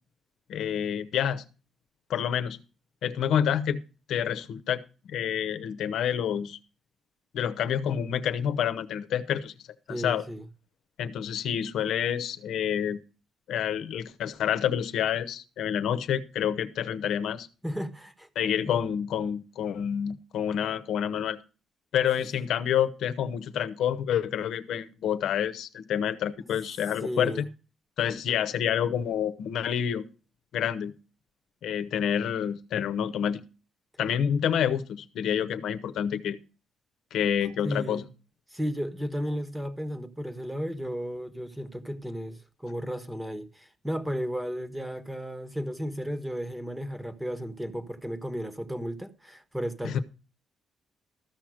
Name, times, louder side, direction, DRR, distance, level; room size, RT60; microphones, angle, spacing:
voice 1, 0.5-1.4 2.1-2.6 3.0-3.8 4.1-6.6 7.3-9.5 9.9-10.2 11.0-13.0 13.5-17.5 18.4-21.4 21.9-27.5 28.0-30.0 30.5-30.9 31.6-33.4 34.0-36.4 37.1-38.0 49.8-50.0, left 9 dB, 75° left, 0.9 m, -28 dB
voice 2, 9.9-10.5 17.6-18.3 18.6-18.7 27.0-27.5 37.6-38.1 38.5-50.0, equal, 10° right, 1.4 m, -34 dB
14.0 x 6.0 x 6.3 m
cardioid pair, 90°, 0 cm